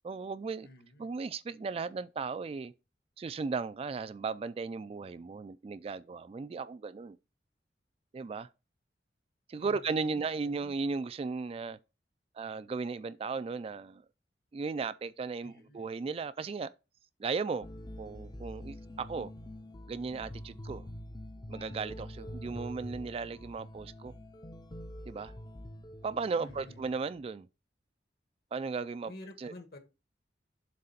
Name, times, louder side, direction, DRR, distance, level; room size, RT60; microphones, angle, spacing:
voice 1, 0.0-0.7 1.0-2.7 3.2-7.2 8.1-8.5 9.5-11.8 12.4-14.0 14.5-16.7 17.2-17.7 18.0-19.3 19.9-20.8 21.5-24.1 25.1-25.3 26.0-27.5 28.5-29.1 29.4-29.5, right 4 dB, 35° right, 0.3 m, -36 dB
voice 2, 0.6-1.1 9.6-10.7 15.4-15.9 26.4-26.8 29.1-29.8, left 1 dB, 60° left, 1.4 m, -51 dB
sound 1, 17.6-27.2, equal, 25° left, 0.5 m, -45 dB
7.5 x 3.3 x 5.7 m
head